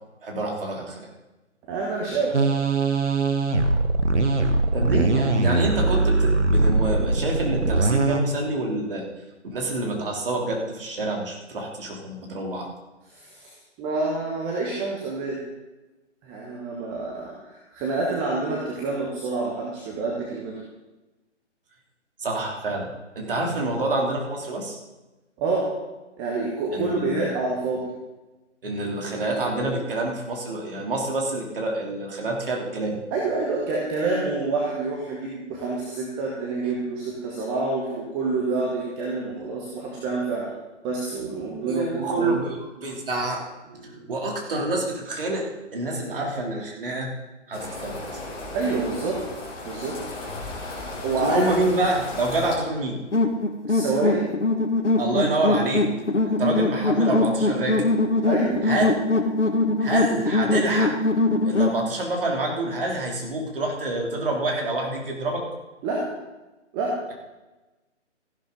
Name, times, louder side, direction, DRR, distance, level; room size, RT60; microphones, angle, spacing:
voice 1, 0.2-1.1 4.7-9.0 9.5-12.7 22.2-22.9 23.1-24.8 26.7-27.3 28.6-32.9 41.6-43.4 44.1-45.5 45.7-47.1 47.5-48.2 51.2-53.0 55.0-55.9 56.2-57.9 58.6-58.9 59.8-61.0 61.4-65.4, right 2 dB, 50° right, 0 dB, 3.2 m, -27 dB
voice 2, 1.7-2.4 13.1-13.5 13.8-15.4 16.2-20.6 25.4-25.7 26.2-27.8 33.1-40.5 40.8-42.3 42.8-42.9 43.7-44.1 48.5-49.2 49.6-50.0 51.0-51.4 53.7-54.3 56.5-56.6 58.2-59.0 65.8-66.1 66.7-67.0, right 3 dB, 15° right, -2 dB, 1.2 m, -27 dB
sound 1, 2.3-8.2, right 3 dB, 70° right, 1.5 m, -21 dB
sound 2, 47.5-52.5, left 2 dB, 15° left, 3.1 m, -35 dB
sound 3, 53.1-61.8, left 2 dB, 75° left, 1.7 m, -22 dB
14.5 x 11.5 x 3.9 m, 1.1 s
figure-of-eight pair, 140°, 36 cm